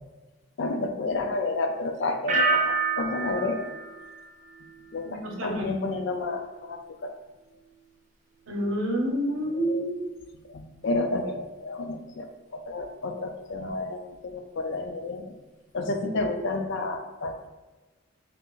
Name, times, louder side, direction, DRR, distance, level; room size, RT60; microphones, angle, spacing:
voice 1, 0.6-3.7 4.9-7.1 9.5-9.8 10.5-15.3 15.7-17.5, left 2 dB, 60° left, 5 dB, 0.4 m, -31 dB
sound 1, 2.3-5.1 5.4-5.9, right 4 dB, 40° right, 0.4 m, -29 dB
voice 2, 5.0-5.6 8.5-10.1, right 1 dB, 70° right, 0 dB, 0.7 m, -28 dB
2.9 x 2.4 x 3.7 m, 1.2 s
head